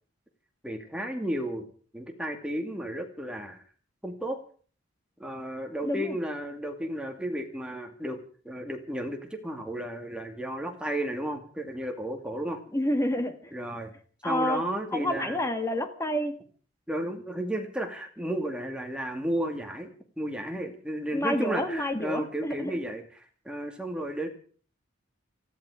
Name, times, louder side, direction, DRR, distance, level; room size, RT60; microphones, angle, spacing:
voice 1, 0.6-1.7 1.9-3.6 4.0-4.4 5.2-8.2 8.4-12.6 13.5-13.9 14.2-15.4 16.9-23.0 23.5-24.3, right 1 dB, 5° right, 3 dB, 2.4 m, -33 dB
voice 2, 5.8-6.2 12.7-13.5 14.2-14.6 14.9-16.4 21.1-22.8, left 1 dB, 15° left, 7 dB, 1.8 m, -29 dB
19.5 x 14.5 x 5.0 m, 0.43 s
head